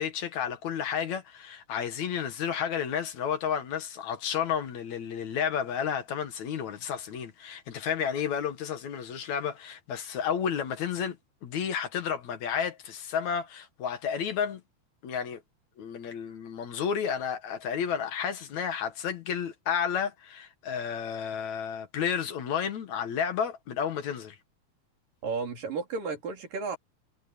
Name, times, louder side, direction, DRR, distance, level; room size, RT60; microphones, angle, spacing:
voice 1, 0.0-11.2 11.4-14.6 15.0-15.4 15.8-24.4, left 7 dB, 65° left, 2.7 m, -31 dB
voice 2, 25.2-26.8, right 4 dB, 85° right, 5.7 m, -33 dB
omnidirectional pair, 3.8 m